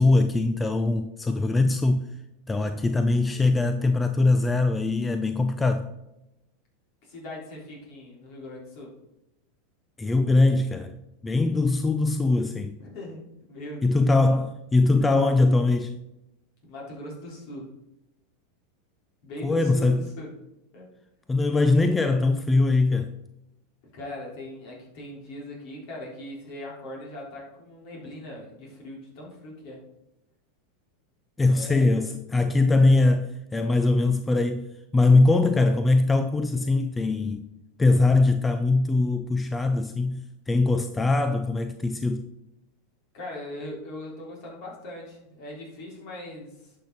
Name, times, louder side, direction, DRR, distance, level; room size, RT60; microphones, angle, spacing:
voice 1, 0.0-2.1 2.5-5.9 10.0-10.9 11.2-12.8 13.8-15.9 19.4-20.0 21.3-23.2 31.4-37.4 37.8-42.3, left 3 dB, 15° left, 0.5 m, -22 dB
voice 2, 7.0-8.9 12.8-13.2 13.5-14.3 16.7-17.7 19.2-20.3 20.7-20.9 23.9-29.8 31.5-32.1 43.1-46.7, left 1 dB, 55° left, 3.8 m, -40 dB
11.0 x 5.9 x 4.0 m
hypercardioid pair, 95°, 0 cm